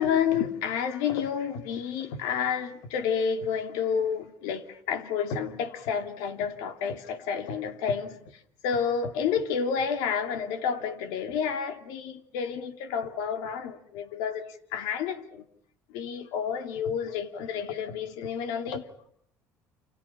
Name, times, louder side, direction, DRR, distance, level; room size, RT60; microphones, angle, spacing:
voice 1, 0.0-8.2 8.6-15.4 15.9-18.8, left 7 dB, 85° left, 2.8 m, -30 dB
30.0 x 27.5 x 5.8 m
cardioid pair, 110°, 7 cm